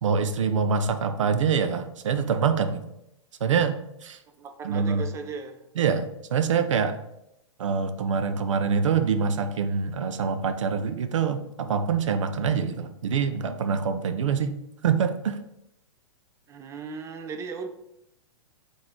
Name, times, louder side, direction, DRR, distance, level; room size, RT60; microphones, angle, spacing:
voice 1, 0.0-2.8 3.4-4.2 4.6-5.0 5.8-7.0 7.6-14.5 14.8-15.4, right 6 dB, 75° right, 9 dB, 0.6 m, -25 dB
voice 2, 4.3-5.6 16.5-17.7, right 5 dB, 20° right, 7 dB, 0.5 m, -37 dB
3.9 x 2.7 x 4.4 m, 0.82 s
hypercardioid pair, 120°, 16 cm